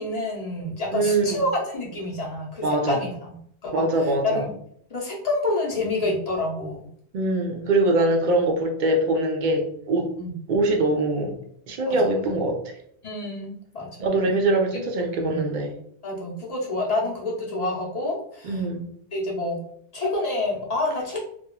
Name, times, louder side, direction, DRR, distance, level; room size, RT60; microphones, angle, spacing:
voice 1, 0.0-4.5 4.9-6.8 10.2-10.3 11.9-12.0 13.0-13.9 15.2-15.4 16.0-18.6 19.1-19.6 19.9-21.2, left 2 dB, 40° left, -4 dB, 0.8 m, -28 dB
voice 2, 0.9-1.5 2.6-3.0 3.7-4.5 7.1-10.1 10.5-11.4 11.7-12.7 14.0-15.7 18.4-18.9, right 2 dB, 60° right, 3 dB, 0.5 m, -23 dB
2.9 x 2.3 x 2.2 m, 0.66 s
omnidirectional pair, 1.2 m